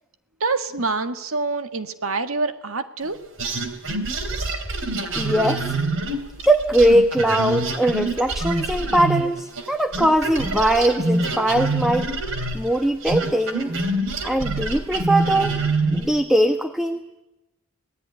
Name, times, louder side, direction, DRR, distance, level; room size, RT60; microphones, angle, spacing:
voice 1, 0.4-3.2, right 3 dB, 80° right, 8 dB, 1.8 m, -26 dB
sound 1, 3.4-9.7 9.9-16.2, right 2 dB, 65° right, 3.4 m, -25 dB
voice 2, 5.2-5.6 6.5-12.1 12.5-13.7 14.2-15.5 15.9-17.2, right 1 dB, ahead, 7 dB, 1.1 m, -20 dB
27.5 x 19.0 x 9.8 m, 0.95 s
head